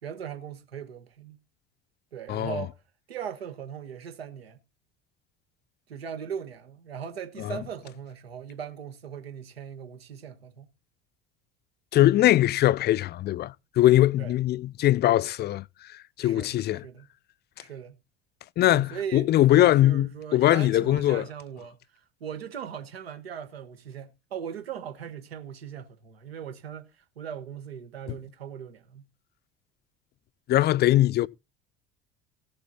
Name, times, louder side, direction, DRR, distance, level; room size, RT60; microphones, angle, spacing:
voice 1, 0.0-1.4 2.1-2.8 3.1-4.6 5.9-10.7 14.2-14.3 16.2-17.1 17.6-18.0 18.7-29.1, right 8 dB, 80° right, 1.5 m, -39 dB
voice 2, 2.3-2.6 7.4-7.6 11.9-15.6 16.2-16.8 18.6-21.3 30.5-31.3, left 14 dB, 35° left, 0.5 m, -21 dB
15.5 x 6.9 x 4.1 m
figure-of-eight pair, 65°, 30 cm